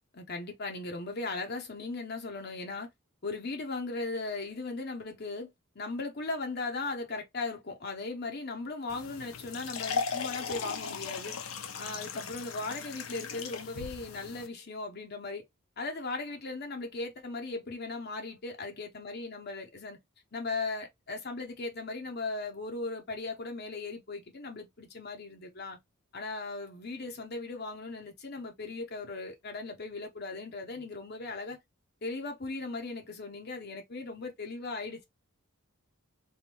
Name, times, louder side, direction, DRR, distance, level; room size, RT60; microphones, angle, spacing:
voice 1, 0.1-2.9 3.2-11.4 11.8-15.4 15.8-20.0 20.3-25.8 26.1-31.6 32.0-35.0, left 3 dB, 50° left, 0.9 m, -38 dB
sound 1, 8.9-14.5, left 5 dB, 90° left, 0.8 m, -37 dB
3.6 x 2.6 x 4.4 m
head